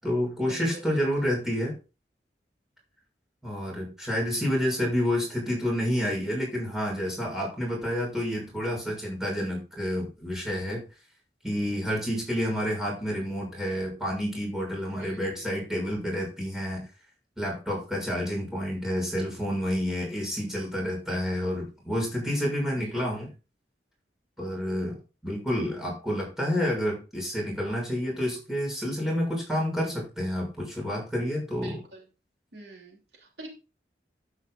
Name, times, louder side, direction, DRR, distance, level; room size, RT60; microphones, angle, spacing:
voice 1, 0.0-1.7 3.4-10.8 11.4-16.9 17.4-23.3 24.4-25.0 25.2-31.8, equal, 5° right, -3 dB, 6.7 m, -29 dB
voice 2, 14.9-15.3 22.7-23.0 31.6-32.0 32.5-33.5, right 2 dB, 75° right, 0 dB, 2.9 m, -44 dB
12.0 x 9.7 x 2.5 m, 0.31 s
head